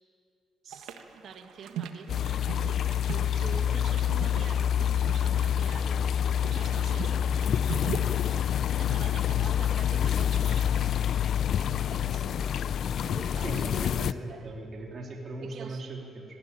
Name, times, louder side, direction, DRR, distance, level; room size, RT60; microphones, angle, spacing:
voice 1, 0.6-2.8 3.0-4.7 5.0-7.6 8.8-11.2 11.5-12.6 13.0-13.6 14.2-14.5 15.4-15.9, right 6 dB, 65° right, 6 dB, 2.0 m, -46 dB
sound 1, 0.7-8.6, right 8 dB, 90° right, 1.6 m, -41 dB
sound 2, 2.1-14.1, left 9 dB, 65° left, 0.5 m, -27 dB
voice 2, 13.4-16.2, right 2 dB, 45° right, 0 dB, 3.3 m, -39 dB
20.0 x 19.5 x 9.7 m, 2.6 s
cardioid pair, 90°, 0 cm